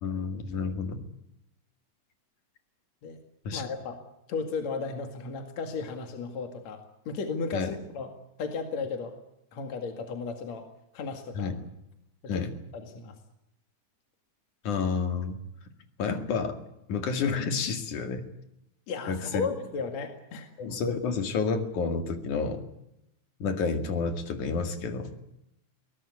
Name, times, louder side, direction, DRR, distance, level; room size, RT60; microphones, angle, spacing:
voice 1, 0.0-1.0 3.5-3.6 7.5-7.7 11.3-11.5 12.3-12.5 14.6-15.4 16.0-16.6 16.9-18.3 19.1-19.5 20.6-22.6 23.4-25.1, left 5 dB, 80° left, 7 dB, 3.7 m, -30 dB
voice 2, 3.5-4.0 4.3-8.1 8.4-9.2 9.5-10.7 10.9-11.5 12.3-12.4 12.7-13.1 18.9-20.5, left 4 dB, 65° left, 5 dB, 3.3 m, -34 dB
22.5 x 19.0 x 9.6 m, 0.84 s
omnidirectional pair, 3.5 m